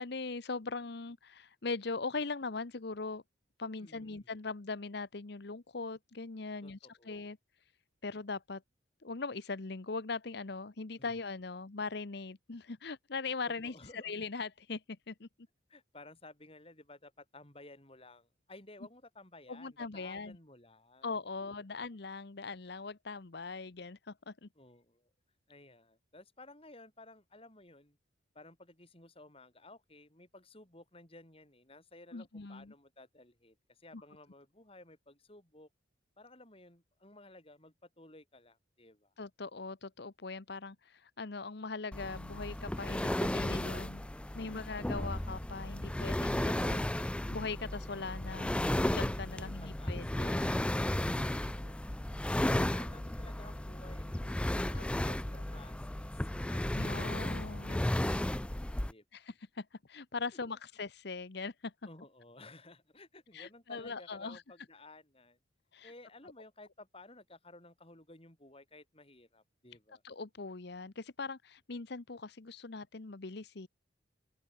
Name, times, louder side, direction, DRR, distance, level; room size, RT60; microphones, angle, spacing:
voice 1, 0.0-3.2 3.6-7.7 8.0-8.6 9.0-15.3 19.5-20.4 21.0-24.5 32.1-32.7 39.2-44.0 44.3-48.6 48.9-50.6 54.7-55.2 56.4-57.9 59.1-61.7 63.3-64.4 65.7-65.9 70.0-73.7, left 4 dB, 60° left, 0.9 m, -41 dB
voice 2, 3.8-4.3 6.6-7.3 11.0-11.1 13.5-14.1 15.7-21.1 21.4-21.5 24.6-25.1 25.5-28.0 28.3-35.7 36.2-39.1 44.3-44.9 49.4-50.0 51.4-51.8 52.4-57.4 57.7-58.5 58.9-59.0 60.3-60.4 61.9-65.4 65.8-70.0, left 2 dB, 30° left, 7.4 m, -56 dB
sound 1, 41.9-58.9, left 1 dB, 5° left, 0.3 m, -34 dB
open air
head